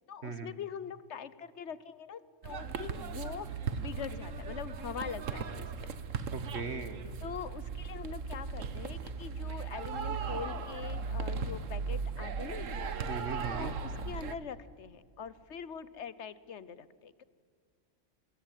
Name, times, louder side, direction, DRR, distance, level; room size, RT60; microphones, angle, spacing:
voice 1, 0.1-5.9 7.2-12.7 13.5-17.2, left 7 dB, 65° left, 16 dB, 1.3 m, -43 dB
sound 1, 2.4-14.3, right 5 dB, 80° right, 1.6 m, -37 dB
voice 2, 6.3-7.0 13.1-13.7, right 4 dB, 60° right, 11 dB, 1.5 m, -38 dB
28.5 x 21.5 x 9.1 m, 2.1 s
omnidirectional pair, 1.3 m